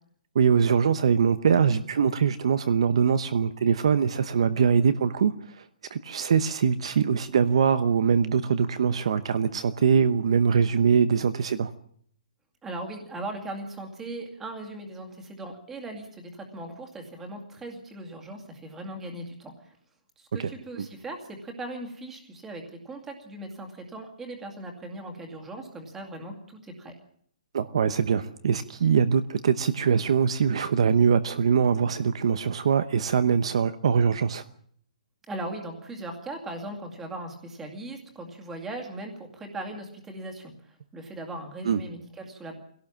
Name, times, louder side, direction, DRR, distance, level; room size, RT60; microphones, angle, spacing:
voice 1, 0.3-5.6 5.9-11.7 20.4-20.5 20.8-20.9 27.5-34.4 41.6-41.8, right 6 dB, 45° right, 12 dB, 0.9 m, -23 dB
voice 2, 12.6-19.8 20.2-26.9 35.3-40.5 40.9-42.5, right 2 dB, 5° right, 3 dB, 2.3 m, -39 dB
24.0 x 17.5 x 7.4 m, 0.64 s
hypercardioid pair, 180°, 4 cm